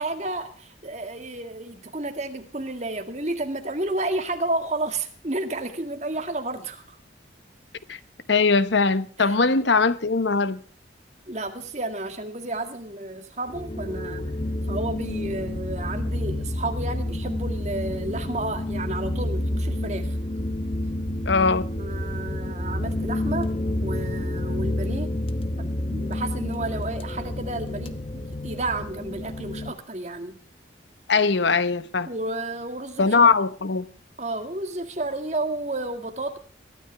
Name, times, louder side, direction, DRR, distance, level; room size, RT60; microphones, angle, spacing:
voice 1, 0.0-7.0 9.2-9.4 11.3-14.3 14.7-20.2 21.8-23.5 23.8-25.2 25.6-30.4 32.1-33.3 34.2-36.4, right 2 dB, 40° right, 2.0 m, -31 dB
voice 2, 8.3-10.6 21.3-21.6 31.1-32.1 33.0-33.9, left 4 dB, 75° left, 0.9 m, -20 dB
sound 1, 13.5-29.7, left 1 dB, 30° left, 0.9 m, -29 dB
22.5 x 13.0 x 3.4 m
head